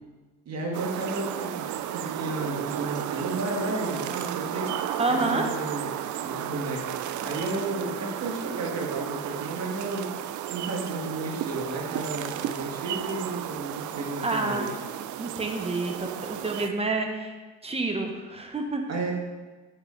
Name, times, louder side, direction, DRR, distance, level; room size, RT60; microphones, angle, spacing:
voice 1, 0.5-14.7 18.9-19.1, right 2 dB, 55° right, 0 dB, 1.9 m, -33 dB
sound 1, 0.7-16.7, right 11 dB, 75° right, 0.5 m, -33 dB
voice 2, 5.0-5.5 14.2-14.7 15.2-17.3 17.6-18.8, right 3 dB, 20° right, 4 dB, 1.1 m, -28 dB
8.0 x 6.1 x 3.9 m, 1.3 s
cardioid pair, 90°, 30 cm